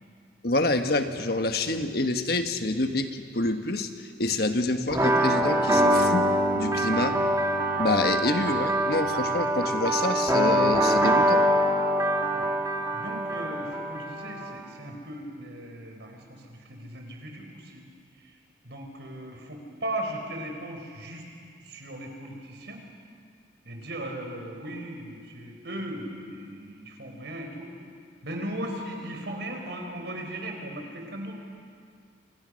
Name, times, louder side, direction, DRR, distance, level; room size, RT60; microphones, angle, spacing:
voice 1, 0.4-7.2 7.8-11.4, left 2 dB, 55° left, 7 dB, 1.4 m, -27 dB
sound 1, 4.9-14.5, right 1 dB, 15° right, 2.1 m, -24 dB
voice 2, 12.9-17.8 18.2-18.4 18.6-21.3 21.6-22.8 23.6-27.7 28.2-31.3, right 1 dB, 65° right, 2 dB, 4.7 m, -37 dB
29.0 x 26.0 x 6.5 m, 2.3 s
head